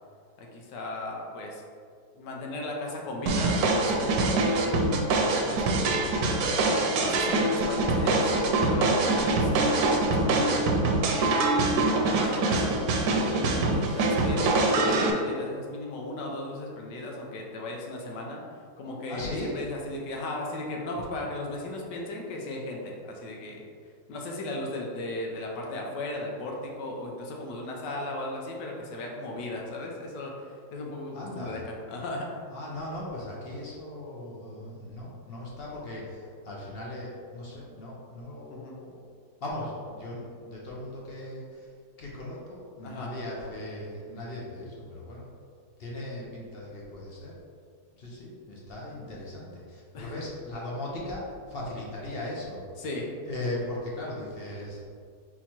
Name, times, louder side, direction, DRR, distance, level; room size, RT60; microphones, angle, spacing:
voice 1, 0.4-1.6 2.1-6.1 6.6-12.8 13.3-18.4 18.8-23.6 24.1-32.4 38.5-38.8 42.8-43.1 49.9-50.1 52.8-53.1, left 1 dB, 85° left, -1 dB, 1.4 m, -36 dB
sound 1, 3.3-15.1, right 2 dB, 70° right, 1.0 m, -24 dB
voice 2, 5.5-6.0 19.1-19.6 31.1-31.6 32.5-39.0 39.4-41.7 42.0-45.3 45.8-47.3 48.0-52.6 53.2-54.8, left 1 dB, 55° left, -4 dB, 0.7 m, -38 dB
4.1 x 3.0 x 4.2 m, 2.2 s
omnidirectional pair, 1.8 m